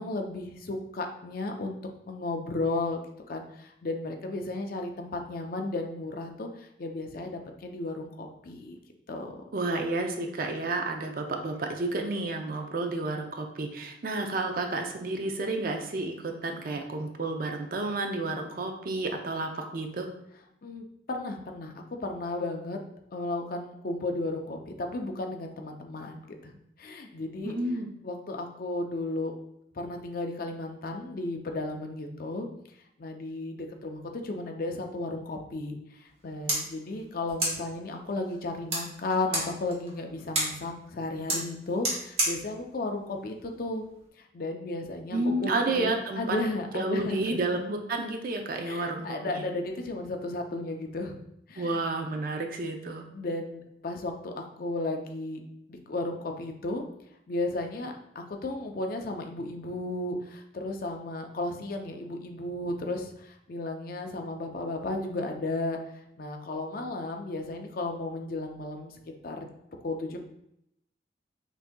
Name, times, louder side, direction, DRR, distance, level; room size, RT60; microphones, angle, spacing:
voice 1, 0.0-1.8 2.1-3.0 3.3-8.8 9.1-9.4 20.6-22.8 23.1-26.5 26.8-27.6 28.0-29.3 29.7-32.5 33.0-43.8 44.2-47.4 48.6-51.2 51.5-51.8 53.1-55.4 55.7-56.8 57.3-65.8 66.2-68.9 69.2-69.5 69.8-70.2, left 2 dB, 50° left, 4 dB, 0.5 m, -34 dB
voice 2, 9.5-20.1 27.4-27.9 45.1-46.4 46.7-49.4 51.6-53.0, right 2 dB, 50° right, 4 dB, 0.5 m, -31 dB
sound 1, 36.1-44.1, right 1 dB, 35° right, 1.2 m, -35 dB
5.9 x 2.7 x 2.2 m, 0.79 s
head